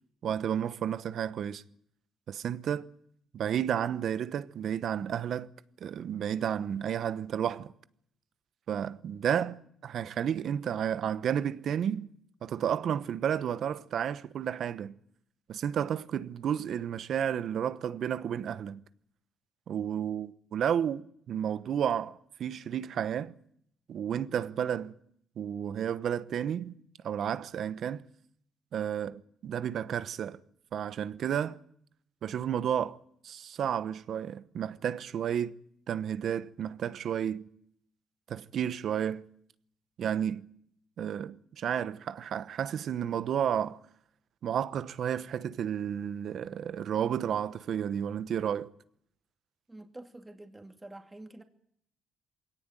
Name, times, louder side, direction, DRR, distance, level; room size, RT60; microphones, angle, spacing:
voice 1, 0.2-1.6 2.3-2.9 3.3-5.5 5.8-7.7 8.7-12.1 12.4-15.0 15.5-18.8 19.7-23.3 23.9-25.0 25.4-26.7 27.0-28.0 28.7-30.4 30.7-31.6 32.2-33.0 33.2-35.6 35.9-37.5 38.3-39.3 40.0-40.5 41.0-43.8 44.4-48.7, right 9 dB, 65° right, 1.0 m, -32 dB
voice 2, 49.7-51.4, right 2 dB, 15° right, 2.5 m, -47 dB
22.0 x 17.5 x 9.2 m
cardioid pair, 90°, 0 cm